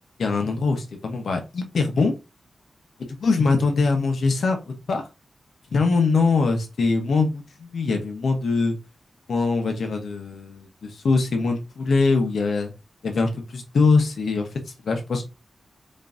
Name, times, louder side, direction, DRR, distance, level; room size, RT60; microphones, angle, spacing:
voice 1, 0.2-2.1 3.2-5.0 5.7-8.8 9.3-12.7 13.0-14.5 14.8-15.2, left 4 dB, 75° left, 4 dB, 0.9 m, -22 dB
5.2 x 2.7 x 2.6 m, 0.25 s
wide cardioid pair, 165°, 0 cm